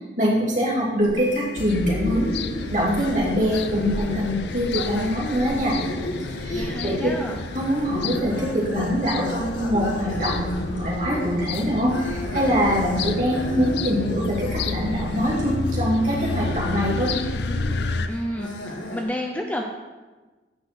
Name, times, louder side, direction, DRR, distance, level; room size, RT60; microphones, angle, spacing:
voice 1, 0.2-2.3 2.7-5.8 6.3-7.1 7.5-17.1, equal, 45° right, -5 dB, 2.5 m, -24 dB
sound 1, 1.0-19.0, equal, 85° left, 1.4 m, -34 dB
Piano, 1.2-2.1, left 1 dB, 25° left, 1.3 m, -40 dB
sound 2, 1.6-18.1, left 4 dB, 60° left, 0.4 m, -31 dB
voice 2, 6.5-7.4 18.1-18.5 18.9-19.6, equal, 10° left, 1 dB, 0.5 m, -29 dB
9.2 x 4.0 x 6.0 m, 1.2 s
head